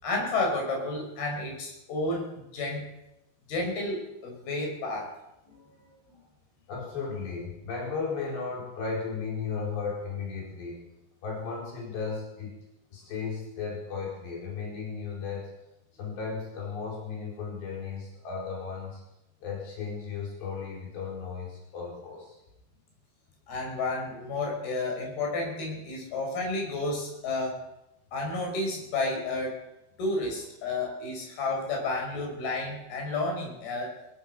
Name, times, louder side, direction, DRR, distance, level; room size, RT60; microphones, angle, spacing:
voice 1, 0.0-2.8 3.5-5.1 23.5-27.6 28.1-29.6 30.0-34.0, left 2 dB, 65° left, 1 dB, 7.5 m, -31 dB
voice 2, 5.5-6.2 6.7-10.8 11.2-12.6 12.9-15.5 16.0-19.0 19.4-22.4, left 5 dB, 85° left, -3 dB, 7.0 m, -35 dB
23.5 x 16.5 x 6.9 m, 0.90 s
omnidirectional pair, 4.8 m